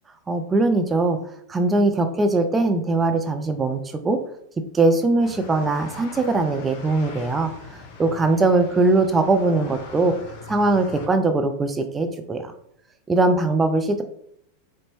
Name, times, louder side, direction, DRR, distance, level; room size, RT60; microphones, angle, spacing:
voice 1, 0.3-1.2 1.5-4.2 4.7-10.1 10.5-12.5 13.1-14.0, right 2 dB, 20° right, 7 dB, 0.3 m, -21 dB
sound 1, 5.2-11.1, left 4 dB, 55° left, 0.7 m, -41 dB
3.9 x 2.1 x 3.0 m, 0.69 s
hypercardioid pair, 90°, 0 cm